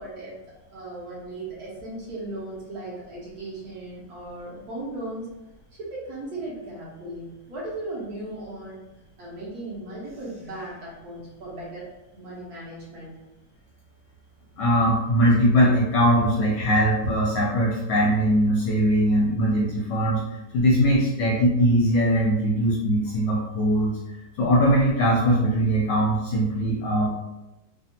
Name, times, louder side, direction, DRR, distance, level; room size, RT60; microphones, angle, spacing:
voice 1, 0.0-5.3 5.8-8.8 9.2-11.9 12.1-13.1, right 2 dB, 60° right, -6 dB, 1.1 m, -37 dB
voice 2, 14.6-20.2 20.5-23.9 24.4-27.1, equal, 70° left, -4 dB, 1.1 m, -21 dB
3.3 x 2.3 x 2.7 m, 0.98 s
omnidirectional pair, 2.3 m